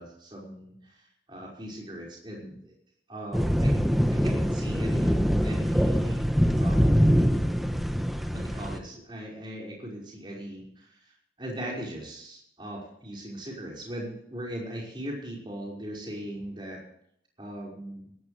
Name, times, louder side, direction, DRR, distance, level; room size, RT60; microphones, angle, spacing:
voice 1, 0.0-2.8 3.1-3.7 4.1-6.3 6.6-7.1 8.3-16.8 17.4-18.1, right 1 dB, 25° right, -3 dB, 5.4 m, -39 dB
sound 1, 3.3-8.8, equal, ahead, 0.9 m, -24 dB
19.0 x 15.5 x 3.4 m, 0.70 s
head